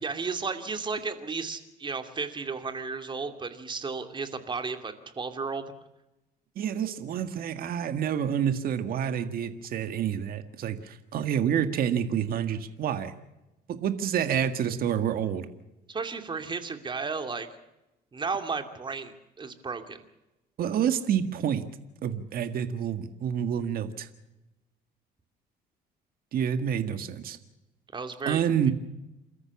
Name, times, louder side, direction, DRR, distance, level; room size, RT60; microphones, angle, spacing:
voice 1, 0.0-5.6 15.9-17.5 18.1-20.0 27.9-28.4, right 4 dB, 30° right, 8 dB, 2.6 m, -33 dB
voice 2, 6.6-13.1 13.7-15.5 20.6-21.6 22.0-24.1 26.3-27.4 28.3-28.7, right 9 dB, 60° right, 9 dB, 1.8 m, -28 dB
28.5 x 13.5 x 7.2 m, 0.96 s
cardioid pair, 110°, 17 cm